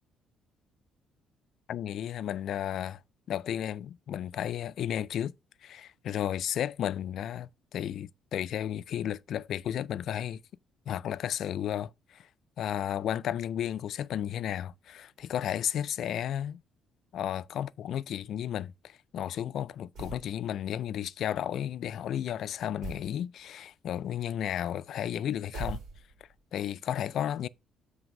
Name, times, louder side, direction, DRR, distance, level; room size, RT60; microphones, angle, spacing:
voice 1, 1.7-3.0 3.3-5.3 5.6-10.4 10.9-12.3 12.6-16.6 17.1-25.8 26.5-27.5, left 10 dB, 55° left, 0.3 m, -33 dB
sound 1, 19.9-20.3 22.8-23.1 25.5-26.3, right 3 dB, 65° right, 2.4 m, -39 dB
7.1 x 3.3 x 5.9 m
cardioid pair, 160°, 0 cm